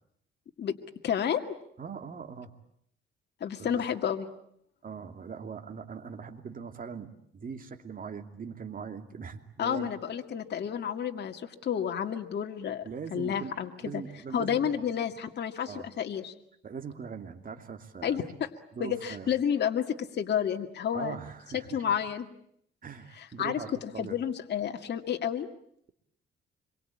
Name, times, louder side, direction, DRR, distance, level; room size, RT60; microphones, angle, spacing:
voice 1, 1.0-1.4 3.4-4.3 9.6-12.8 13.1-14.0 14.3-16.3 18.0-18.5 18.8-21.2 21.5-22.3 23.4-25.5, left 8 dB, 60° left, 4 dB, 2.2 m, -30 dB
voice 2, 1.8-2.5 3.6-3.8 4.8-9.9 12.8-14.9 15.6-15.9 16.6-18.2 18.7-19.3 20.9-21.8 22.8-24.2, right 6 dB, 45° right, 6 dB, 2.8 m, -41 dB
27.0 x 23.0 x 8.7 m, 0.71 s
cardioid pair, 90°, 20 cm